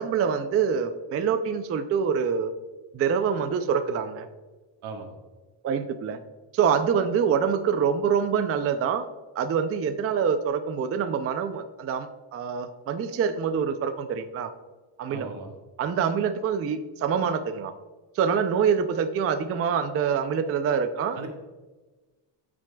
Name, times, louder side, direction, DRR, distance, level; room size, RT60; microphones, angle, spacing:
voice 1, 0.0-2.5 2.9-4.3 5.6-6.2 6.5-9.1 9.4-14.5 15.0-15.3 15.8-17.7 18.2-21.3, right 7 dB, 30° right, 8 dB, 0.4 m, -25 dB
voice 2, 4.8-5.2 15.1-15.6 21.1-21.3, right 4 dB, 80° right, 3 dB, 1.6 m, -38 dB
13.0 x 6.1 x 2.2 m, 1.2 s
cardioid pair, 145°, 47 cm